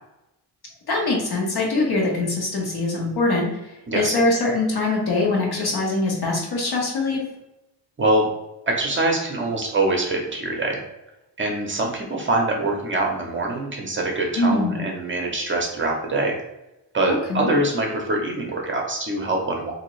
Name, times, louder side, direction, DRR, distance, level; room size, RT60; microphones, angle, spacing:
voice 1, 0.9-7.2 14.4-14.8 17.1-17.5, left 2 dB, 60° left, -2 dB, 1.2 m, -23 dB
voice 2, 8.0-8.3 8.7-10.8 11.4-16.4 16.9-19.7, right 2 dB, 30° right, 0 dB, 0.7 m, -24 dB
3.5 x 2.7 x 3.1 m, 0.93 s
cardioid pair, 120°, 42 cm